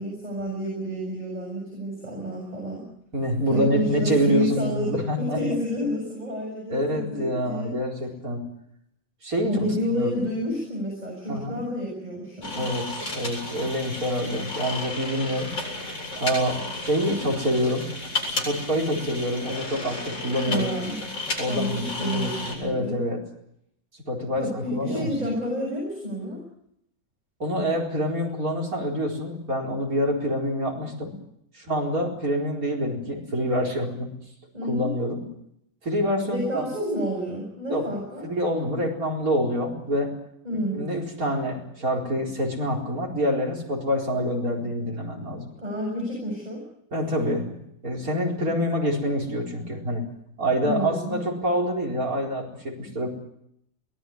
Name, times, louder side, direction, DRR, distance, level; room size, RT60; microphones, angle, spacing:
voice 1, 0.0-2.9 3.5-7.7 9.4-12.6 20.5-21.0 21.5-23.0 24.4-26.4 34.5-34.9 36.2-38.3 40.4-40.9 45.6-46.6 50.6-51.2, equal, 20° right, -2 dB, 7.4 m, -29 dB
voice 2, 3.1-5.4 6.7-8.4 9.2-10.1 11.3-11.6 12.5-15.9 16.1-17.9 18.3-20.7 21.4-23.2 24.1-25.1 27.4-31.2 31.5-34.1 34.7-35.3 35.8-36.7 37.7-40.1 40.5-45.5 46.9-50.1 50.4-53.1, equal, 45° right, 0 dB, 4.9 m, -26 dB
sound 1, 12.4-22.5, left 2 dB, 80° left, 8.6 m, -33 dB
23.5 x 18.5 x 9.5 m, 0.77 s
omnidirectional pair, 2.0 m